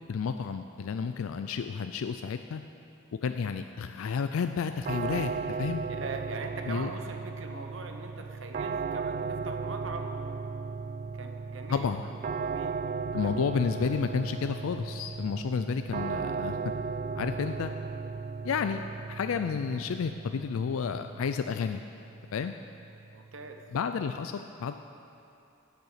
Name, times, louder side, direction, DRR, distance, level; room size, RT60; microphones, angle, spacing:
voice 1, 0.1-2.6 3.2-5.3 5.6-5.8 6.7-6.9 11.7-12.0 13.1-16.6 17.2-17.7 18.4-18.8 19.1-21.8 22.3-22.5 23.7-24.7, left 6 dB, 85° left, 8 dB, 0.4 m, -31 dB
sound 1, 4.9-23.8, right 5 dB, 40° right, 0.3 m, -36 dB
voice 2, 5.9-10.4 11.1-12.8 13.2-13.4 23.1-23.6, right 3 dB, 65° right, 5 dB, 0.9 m, -42 dB
10.5 x 6.8 x 8.0 m, 2.7 s
head